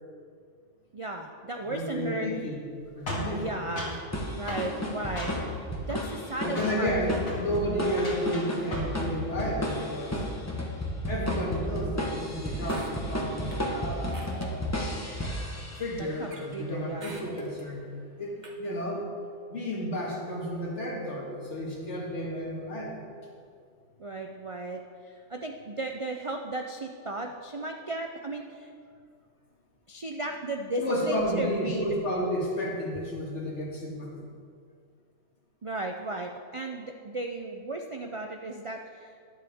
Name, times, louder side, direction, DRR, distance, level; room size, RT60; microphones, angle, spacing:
voice 1, 0.9-2.3 3.1-4.0 4.4-6.9 16.0-17.2 24.0-28.7 29.9-31.9 35.6-39.1, right 2 dB, 55° right, 3 dB, 0.3 m, -35 dB
voice 2, 1.7-2.6 2.9-3.6 6.4-10.2 11.1-15.0 15.8-17.9 18.2-19.1 19.5-23.0 30.8-34.3, equal, 55° left, -2 dB, 2.2 m, -32 dB
sound 1, 3.1-4.0 4.5-4.7 5.2-5.6 5.9-6.3 6.6-6.8 7.2-7.4 7.9-9.0 9.3-9.6, left 1 dB, 80° left, 2.8 m, -37 dB
sound 2, 4.1-16.1, equal, 10° left, 1.2 m, -33 dB
sound 3, 12.7-13.6 14.1-14.5 14.9-15.0 16.3-16.6 17.0-17.7 18.4-18.5, right 2 dB, 35° right, 1.3 m, -46 dB
12.0 x 11.0 x 3.6 m, 2.2 s
omnidirectional pair, 1.4 m